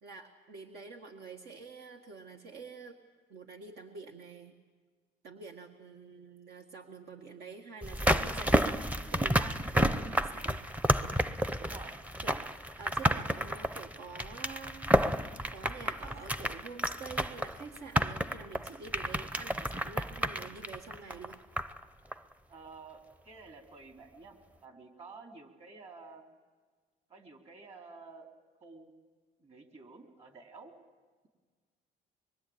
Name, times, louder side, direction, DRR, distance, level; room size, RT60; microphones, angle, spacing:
voice 1, 0.0-3.0 3.3-4.6 5.2-8.8 9.1-10.6 12.2-12.5 12.8-21.4, right 4 dB, 70° right, 3 dB, 2.0 m, -47 dB
sound 1, 7.8-21.8 22.1-22.2, equal, 10° right, 0.8 m, -31 dB
voice 2, 11.6-12.0 22.5-24.4 24.6-26.2 27.1-28.3 28.6-28.9 29.4-30.7, right 4 dB, 40° right, 4 dB, 3.7 m, -51 dB
24.5 x 22.5 x 8.8 m, 1.4 s
cardioid pair, 110°, 17 cm